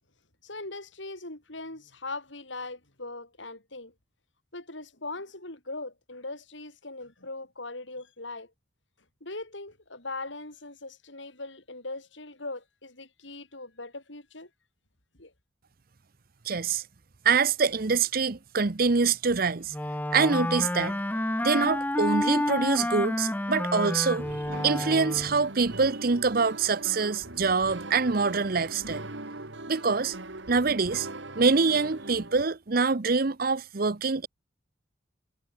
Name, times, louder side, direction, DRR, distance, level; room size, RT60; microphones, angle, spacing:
voice 1, 0.4-3.9 4.5-8.5 9.2-14.5 15.2-15.3, left 2 dB, 75° left, 7.5 m, -40 dB
voice 2, 16.4-16.8 17.2-19.7 20.1-21.0 21.4-29.0 29.7-30.2 30.5-31.1 31.3-34.3, right 4 dB, 50° right, 0.8 m, -25 dB
Wind instrument woodwind instrument, 19.7-25.5, left 1 dB, 10° left, 0.8 m, -29 dB
sound 1, 24.2-32.4, right 2 dB, 70° right, 2.6 m, -41 dB
head